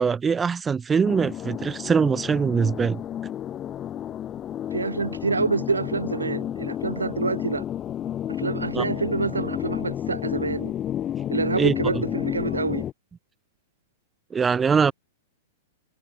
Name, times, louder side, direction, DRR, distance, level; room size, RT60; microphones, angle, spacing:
voice 1, 0.0-3.0 8.7-8.8 11.5-12.0 14.3-14.9, right 6 dB, 15° right, 1.6 m, -22 dB
sound 1, 1.0-12.9, left 10 dB, 25° left, 5.8 m, -31 dB
voice 2, 4.7-7.6 8.3-10.7 11.3-12.8, right 4 dB, 85° right, 5.9 m, -27 dB
figure-of-eight pair, 105°, 0 cm